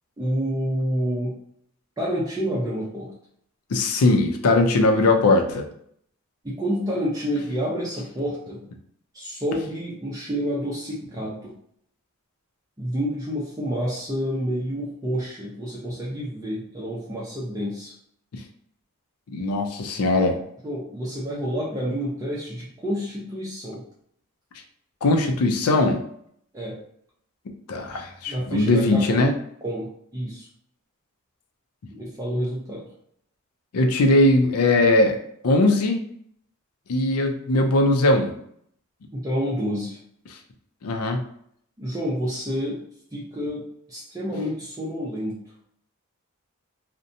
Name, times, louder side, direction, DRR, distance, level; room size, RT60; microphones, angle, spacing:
voice 1, 0.2-1.4 2.0-3.1 6.4-8.6 9.1-11.5 12.8-17.9 20.6-23.8 26.5-26.8 28.3-29.3 29.6-30.5 31.9-32.9 39.1-40.0 41.8-42.8 43.1-43.6 43.9-45.4, equal, 15° right, -6 dB, 0.4 m, -28 dB
voice 2, 3.7-5.7 19.3-20.4 25.0-26.0 27.7-29.3 33.7-35.2 35.4-36.0 36.9-38.3 40.8-41.2, left 2 dB, 85° left, 4 dB, 0.4 m, -20 dB
2.7 x 2.1 x 2.6 m, 0.68 s
head